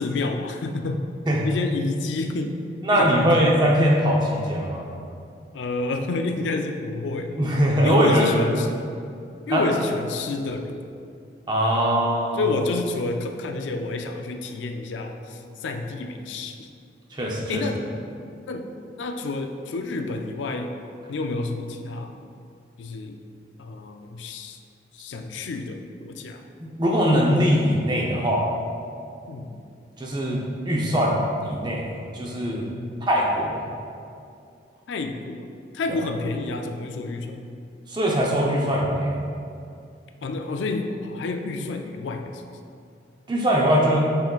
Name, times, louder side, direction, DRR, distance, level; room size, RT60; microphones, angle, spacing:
voice 1, 0.0-1.1 1.4-2.6 2.9-3.5 5.5-7.4 7.8-8.7 9.5-10.8 12.3-16.7 17.5-17.9 18.4-18.7 19.0-20.7 21.1-22.1 22.8-23.2 23.6-24.6 24.9-26.4 29.3-29.6 32.8-33.1 34.9-35.4 35.7-37.5 40.2-42.4, left 3 dB, 85° left, 5 dB, 0.4 m, -29 dB
voice 2, 2.8-4.9 7.3-8.5 9.5-9.6 11.5-12.5 17.1-17.6 26.6-28.5 30.0-32.7 33.1-33.6 35.9-36.0 37.9-39.2 43.3-44.0, equal, 25° right, -3 dB, 0.6 m, -21 dB
5.6 x 3.7 x 2.4 m, 2.4 s
head